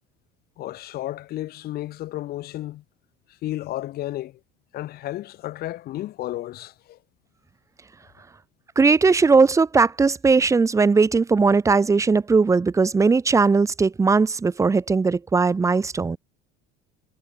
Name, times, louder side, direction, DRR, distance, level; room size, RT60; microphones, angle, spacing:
voice 1, 0.6-2.8 3.4-4.4 4.7-7.0, left 15 dB, 50° left, 7.5 m, -32 dB
voice 2, 8.8-16.2, right 4 dB, 15° right, 1.8 m, -19 dB
cardioid pair, 145°, 20 cm